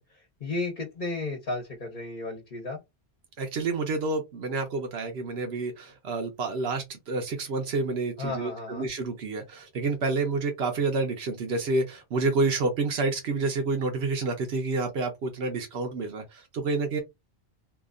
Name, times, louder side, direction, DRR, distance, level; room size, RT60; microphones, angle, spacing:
voice 1, 0.1-2.8 8.2-8.9, left 3 dB, 50° left, 0.9 m, -33 dB
voice 2, 3.4-17.0, right 3 dB, 80° right, 1.0 m, -29 dB
2.8 x 2.4 x 2.4 m
omnidirectional pair, 1.1 m